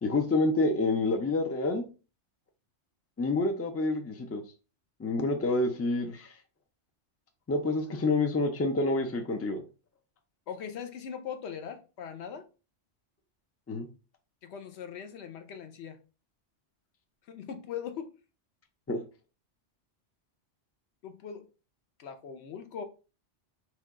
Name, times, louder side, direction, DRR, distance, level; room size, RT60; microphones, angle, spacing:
voice 1, 0.0-1.9 3.2-4.4 5.0-6.3 7.5-9.6 13.7-13.9 18.9-19.0, left 2 dB, 25° left, 0.3 m, -28 dB
voice 2, 10.5-12.5 14.4-16.0 17.2-18.2 21.0-21.5 22.0-22.8, left 7 dB, 70° left, 0.9 m, -40 dB
4.5 x 2.3 x 3.6 m
omnidirectional pair, 1.2 m